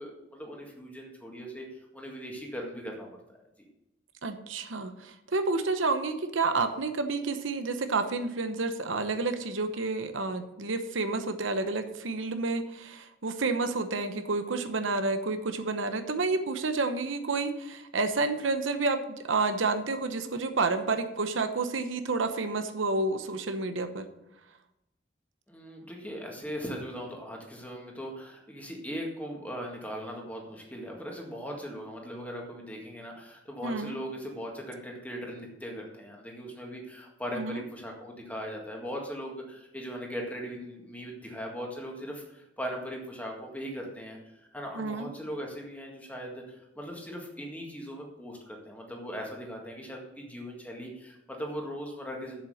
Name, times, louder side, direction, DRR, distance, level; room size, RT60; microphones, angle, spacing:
voice 1, 0.0-3.2 25.5-44.2 44.5-52.4, equal, 10° left, 0 dB, 1.8 m, -39 dB
voice 2, 4.2-24.1 33.6-34.0 37.3-37.6 44.7-45.1, right 3 dB, 85° right, 8 dB, 0.9 m, -30 dB
7.7 x 7.5 x 6.5 m, 0.89 s
head